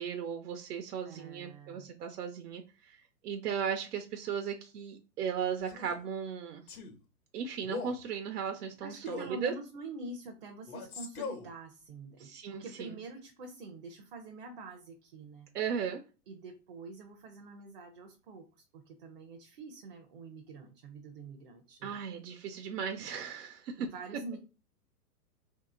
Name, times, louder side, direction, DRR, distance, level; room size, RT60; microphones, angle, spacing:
voice 1, 0.0-6.6 7.3-9.5 12.2-13.0 15.5-16.0 21.8-23.9, right 7 dB, 80° right, 5 dB, 0.7 m, -36 dB
voice 2, 1.0-1.9 8.8-15.5 16.3-22.0 23.8-24.4, right 3 dB, 35° right, 3 dB, 0.5 m, -46 dB
Male speech man speaking, 5.6-6.0 6.7-7.0 7.6-8.0 9.1-9.4 10.7-11.5, left 5 dB, 65° left, 1.1 m, -41 dB
2.8 x 2.7 x 3.7 m, 0.31 s
hypercardioid pair, 150°, 46 cm